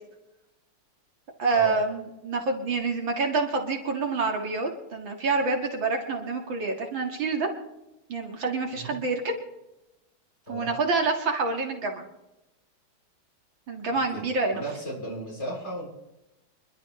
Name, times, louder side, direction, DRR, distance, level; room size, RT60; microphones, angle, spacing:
voice 1, 1.4-7.5 8.1-9.4 10.5-12.0 13.7-14.6, right 4 dB, 70° right, 2 dB, 2.7 m, -27 dB
voice 2, 14.1-15.9, right 1 dB, 30° left, -4 dB, 7.4 m, -35 dB
25.5 x 12.0 x 3.2 m, 0.93 s
omnidirectional pair, 2.2 m